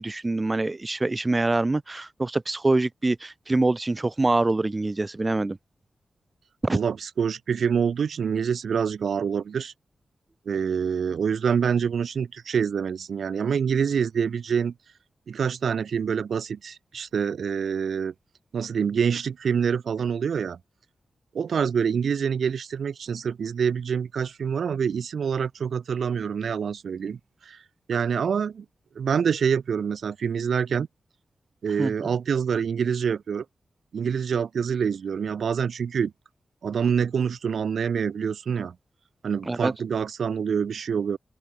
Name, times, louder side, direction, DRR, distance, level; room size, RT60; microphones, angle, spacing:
voice 1, 0.0-5.6 6.6-6.8 31.8-32.1 39.4-39.7, right 2 dB, 20° right, 1.5 m, -25 dB
voice 2, 6.7-9.7 10.4-14.7 15.3-18.1 18.5-20.6 21.3-27.2 27.4-27.6 27.9-28.6 28.9-30.9 31.6-33.4 33.9-36.1 36.6-38.7 39.2-41.2, right 7 dB, 75° right, 1.6 m, -26 dB
wide cardioid pair, 140°, 0 cm